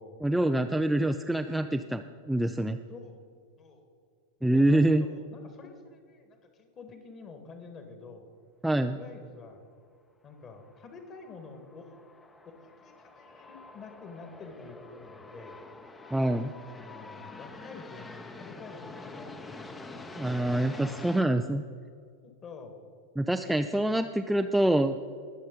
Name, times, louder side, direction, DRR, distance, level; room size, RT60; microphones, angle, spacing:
voice 1, 0.2-2.0 2.3-2.8 4.4-5.1 8.6-9.0 16.1-16.5 20.2-21.6 23.2-24.9, right 1 dB, 5° right, 7 dB, 0.4 m, -25 dB
voice 2, 2.9-3.2 3.6-3.9 4.5-8.3 8.9-9.7 10.2-12.0 12.5-15.6 16.7-19.9 20.2-20.6 21.2-21.3 22.4-22.8, left 4 dB, 30° left, 6 dB, 1.8 m, -48 dB
sound 1, 10.5-21.2, left 3 dB, 15° left, 0.8 m, -46 dB
21.0 x 7.4 x 3.9 m, 2.3 s
figure-of-eight pair, 90°, 0 cm